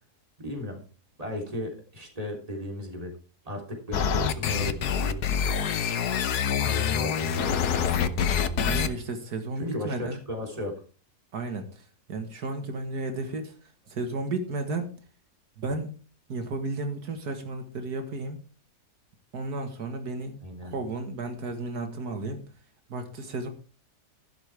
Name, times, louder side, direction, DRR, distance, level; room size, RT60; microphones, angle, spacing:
voice 1, 0.4-0.8 1.2-3.2 3.5-5.5 6.6-8.9 9.6-10.7 20.4-20.7, left 1 dB, 20° right, 1 dB, 3.5 m, -36 dB
sound 1, 3.9-8.9, left 7 dB, 75° left, 1.5 m, -26 dB
voice 2, 8.6-10.2 11.3-14.9 15.6-15.9 16.3-18.4 19.3-22.4 22.9-23.5, right 3 dB, 80° right, 6 dB, 2.1 m, -33 dB
13.0 x 11.5 x 3.5 m, 0.36 s
omnidirectional pair, 1.7 m